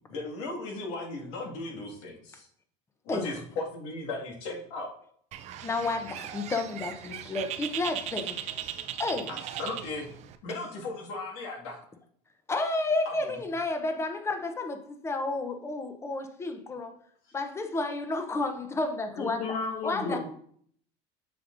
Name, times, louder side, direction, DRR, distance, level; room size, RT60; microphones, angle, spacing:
voice 1, 0.1-2.5 3.1-4.9 9.3-10.1 10.4-11.8 13.2-13.4, left 2 dB, 85° left, -2 dB, 1.9 m, -36 dB
Bird, 5.3-10.4, right 10 dB, 45° right, 0.5 m, -38 dB
voice 2, 5.6-8.4 9.0-9.4 12.5-16.9 17.3-19.4 19.8-20.2, left 2 dB, 15° left, 7 dB, 0.7 m, -31 dB
voice 3, 19.2-20.2, left 4 dB, 65° left, -1 dB, 1.9 m, -33 dB
6.8 x 6.5 x 2.5 m, 0.63 s
cardioid pair, 140°, 15 cm